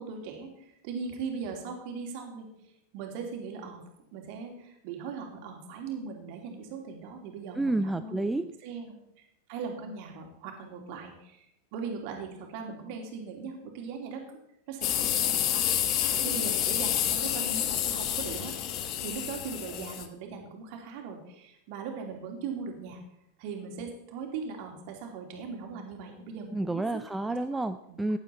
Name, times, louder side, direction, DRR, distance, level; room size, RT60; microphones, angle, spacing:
voice 1, 0.0-2.5 2.9-3.8 4.1-8.3 8.6-14.2 14.7-15.7 16.1-18.5 19.0-23.0 23.4-26.8 27.3-27.6 27.9-28.0, right 5 dB, 45° right, 3 dB, 2.9 m, -39 dB
voice 2, 7.6-8.5 26.5-28.2, right 2 dB, 5° right, 10 dB, 0.5 m, -30 dB
sound 1, 14.8-20.0, left 10 dB, 40° left, 1.2 m, -29 dB
15.5 x 10.0 x 4.2 m, 0.80 s
figure-of-eight pair, 90°, 0 cm